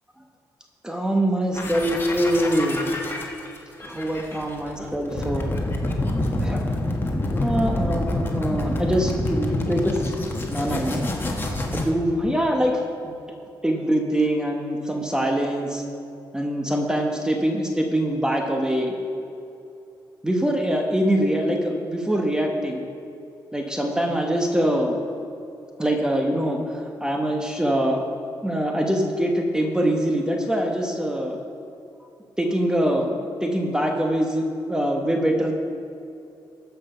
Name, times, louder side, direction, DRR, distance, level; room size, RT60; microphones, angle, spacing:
voice 1, 0.8-2.9 3.8-5.5 6.4-6.6 7.2-10.1 10.5-11.1 11.7-13.2 13.6-15.8 16.3-18.9 20.2-22.8 23.5-25.0 25.8-28.0 28.4-31.4 32.4-35.5, right 1 dB, 10° right, 2 dB, 1.1 m, -24 dB
sound 1, 1.5-11.9, left 1 dB, 25° left, 1.5 m, -27 dB
14.0 x 5.7 x 5.6 m, 2.7 s
cardioid pair, 85°, 8 cm